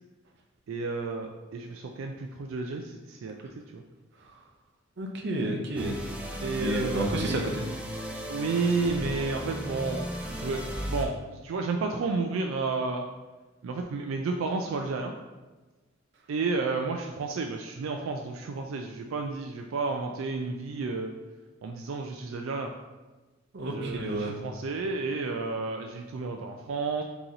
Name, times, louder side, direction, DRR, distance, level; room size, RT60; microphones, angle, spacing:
voice 1, 0.7-3.8 6.4-7.4 8.3-13.0 13.6-15.1 16.3-21.1 21.6-22.7 23.6-27.0, right 4 dB, 85° right, 3 dB, 0.3 m, -31 dB
voice 2, 5.0-6.0 6.6-7.6 23.5-24.3, right 1 dB, 60° right, 1 dB, 0.7 m, -30 dB
sound 1, 5.8-11.1, equal, 5° right, 0.4 m, -35 dB
3.9 x 3.0 x 3.8 m, 1.2 s
head